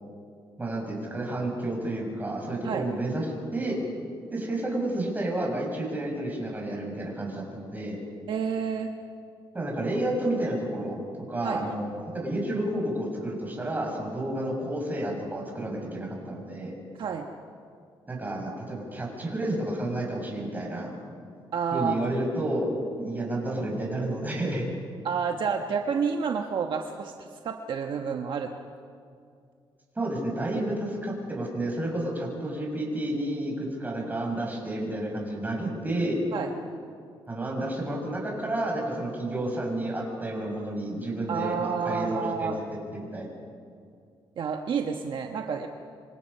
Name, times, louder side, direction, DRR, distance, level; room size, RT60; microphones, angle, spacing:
voice 1, 0.6-3.3 3.5-3.8 4.3-8.0 9.5-11.0 11.3-16.7 18.1-20.9 21.7-22.7 23.0-24.6 29.9-36.2 37.3-42.6 42.9-43.3, right 1 dB, 20° right, -1 dB, 6.4 m, -30 dB
voice 2, 8.3-8.9 11.4-11.7 17.0-17.3 21.5-21.9 25.0-28.5 30.5-30.6 36.3-36.5 41.3-42.6 44.4-45.7, right 6 dB, 65° right, 3 dB, 1.2 m, -29 dB
26.0 x 25.0 x 5.6 m, 2.3 s
cardioid pair, 120°, 9 cm